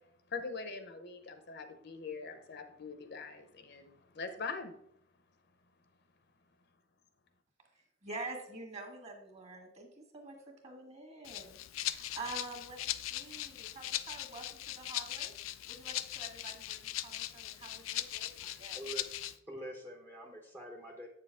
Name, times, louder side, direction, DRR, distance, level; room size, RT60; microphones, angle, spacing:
voice 1, 0.3-4.7, left 4 dB, 60° left, 9 dB, 0.8 m, -42 dB
voice 2, 8.0-15.3 15.7-18.3 18.6-18.8, right 2 dB, 35° right, 3 dB, 1.7 m, -47 dB
Rattle (instrument), 11.2-19.4, left 14 dB, 90° left, 0.4 m, -40 dB
voice 3, 18.4-19.1 19.5-21.1, right 1 dB, 15° right, 1 dB, 0.8 m, -46 dB
7.9 x 6.8 x 3.5 m, 0.71 s
head